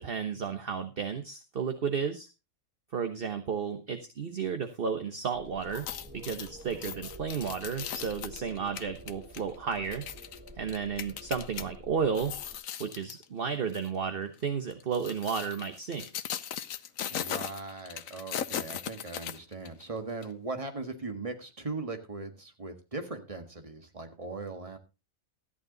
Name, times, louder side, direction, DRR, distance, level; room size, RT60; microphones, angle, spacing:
voice 1, 0.0-2.3 2.9-5.8 6.1-10.0 10.6-12.3 12.8-16.0, right 6 dB, 45° right, 8 dB, 1.2 m, -33 dB
sound 1, 5.3-12.6, equal, 10° right, 1.3 m, -49 dB
sound 2, 5.6-11.7 12.1-13.2 13.7-13.9 14.7-19.8 20.2-20.3, left 9 dB, 75° left, 1.2 m, -38 dB
voice 2, 17.1-24.8, right 3 dB, 25° right, 6 dB, 1.8 m, -39 dB
13.5 x 9.9 x 3.9 m, 0.28 s
omnidirectional pair, 1.4 m